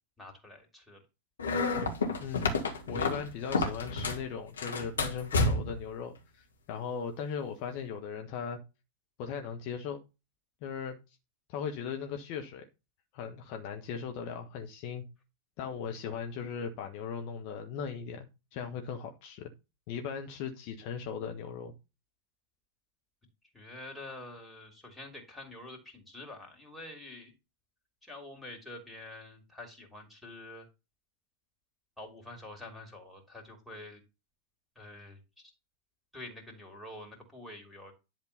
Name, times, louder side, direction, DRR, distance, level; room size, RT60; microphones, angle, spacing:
voice 1, 0.2-1.0 23.5-27.3 28.0-30.7 32.0-34.0 34.7-35.5 36.1-37.9, left 2 dB, 5° left, 3.0 m, -47 dB
sound 1, 1.4-4.3 4.6-5.9, left 3 dB, 70° left, 1.8 m, -30 dB
voice 2, 2.2-8.6 9.2-10.0 10.6-11.0 11.5-12.7 13.1-15.0 15.6-19.5 19.9-21.7, left 6 dB, 45° left, 1.1 m, -38 dB
10.5 x 3.7 x 5.6 m
figure-of-eight pair, 90°, 0 cm